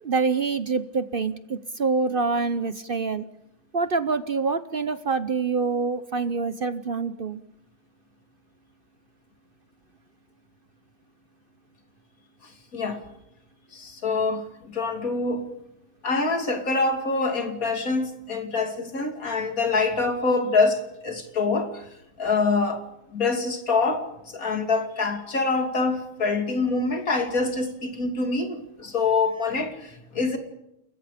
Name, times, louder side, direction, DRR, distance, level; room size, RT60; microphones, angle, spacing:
voice 1, 0.0-3.2 3.7-7.4, right 4 dB, 50° right, 0.6 m, -26 dB
voice 2, 12.4-13.0 13.7-15.5 16.0-21.9 22.2-22.8 23.1-24.1 24.3-30.4, left 3 dB, 45° left, 3.2 m, -25 dB
29.5 x 21.0 x 5.1 m
omnidirectional pair, 2.1 m